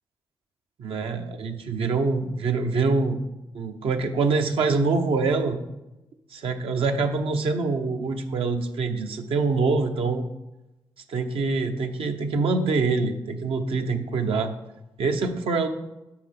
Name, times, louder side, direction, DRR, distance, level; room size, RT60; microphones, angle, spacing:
voice 1, 0.8-3.2 3.5-5.6 6.3-10.3 11.1-14.5 15.0-15.7, right 4 dB, 75° right, 5 dB, 0.9 m, -25 dB
6.6 x 5.9 x 5.9 m, 0.96 s
cardioid pair, 60°, 10 cm